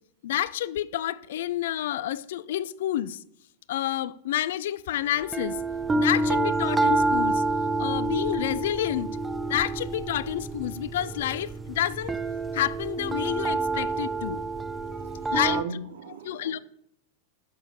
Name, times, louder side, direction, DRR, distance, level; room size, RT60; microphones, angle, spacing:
voice 1, 0.2-3.2 3.7-5.6 5.9-7.4 7.8-9.1 9.5-12.1 12.5-14.4 15.3-15.6 16.2-16.6, left 12 dB, 55° left, 0.4 m, -29 dB
sound 1, 5.2-15.6, right 2 dB, 15° right, 0.4 m, -28 dB
voice 2, 14.7-16.6, right 6 dB, 60° right, 0.9 m, -37 dB
7.1 x 6.9 x 6.7 m
figure-of-eight pair, 90°, 0 cm